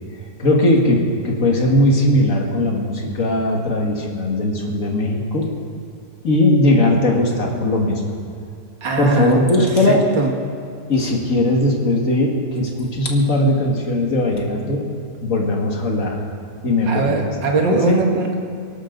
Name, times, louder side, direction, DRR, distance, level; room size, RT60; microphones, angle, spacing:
voice 1, 0.4-5.5 6.2-8.0 9.0-10.0 10.9-14.9 15.2-16.2 16.6-17.2 17.7-18.0, left 1 dB, 45° left, 0 dB, 2.3 m, -18 dB
voice 2, 8.8-9.4 9.9-10.3 16.9-18.3, right 3 dB, 80° right, 2 dB, 2.2 m, -20 dB
24.0 x 11.5 x 4.0 m, 2.4 s
omnidirectional pair, 1.9 m